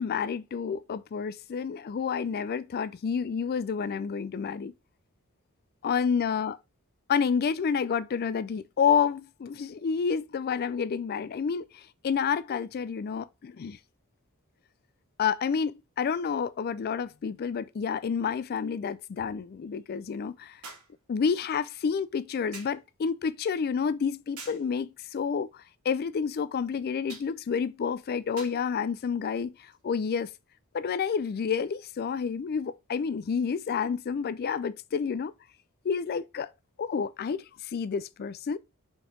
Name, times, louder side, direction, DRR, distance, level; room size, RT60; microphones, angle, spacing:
voice 1, 0.0-4.7 5.8-6.6 7.1-13.8 15.2-20.6 21.1-30.3 30.7-35.3 35.8-36.5 36.8-38.6, left 6 dB, 45° left, 0.3 m, -29 dB
sound 1, 16.8-16.9 20.6-21.0 22.5-22.8 24.4-24.7 27.1-27.3 28.4-28.6 29.7-29.8, right 4 dB, 85° right, 2.1 m, -45 dB
4.7 x 4.3 x 5.0 m
head